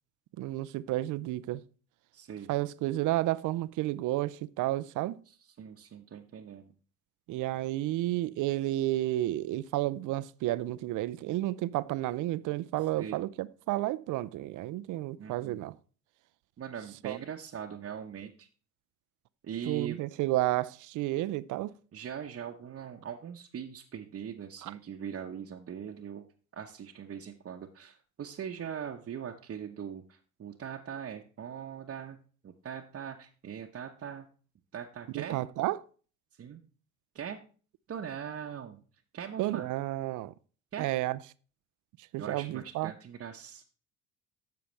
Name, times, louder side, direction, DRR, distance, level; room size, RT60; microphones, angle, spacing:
voice 1, 0.4-1.6 2.5-5.2 7.3-15.8 17.0-17.2 19.7-21.7 24.6-24.7 35.1-35.8 39.4-40.3 40.8-41.2 42.1-42.9, right 16 dB, 50° right, 0.6 m, -31 dB
voice 2, 2.1-2.5 5.3-6.7 13.0-13.2 15.2-15.7 16.6-18.5 19.4-20.0 21.9-26.3 26.5-32.2 32.4-34.2 34.7-35.4 36.4-36.6 37.1-37.4 37.9-38.8 39.1-39.7 40.7-40.9 42.2-43.6, right 8 dB, 35° right, 1.0 m, -41 dB
10.5 x 6.9 x 3.3 m
hypercardioid pair, 60°, 38 cm